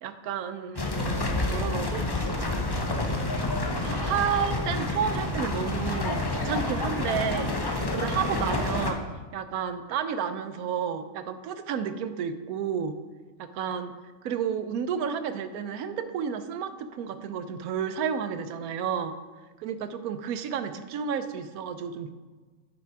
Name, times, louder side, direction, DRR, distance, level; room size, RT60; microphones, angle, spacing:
voice 1, 0.0-2.6 3.6-9.0 9.3-13.0 13.4-13.9 14.2-19.2 19.6-22.1, right 7 dB, 80° right, 10 dB, 1.1 m, -31 dB
sound 1, 0.7-8.9, left 2 dB, 25° left, 0.6 m, -28 dB
9.5 x 5.8 x 4.5 m, 1.4 s
omnidirectional pair, 1.5 m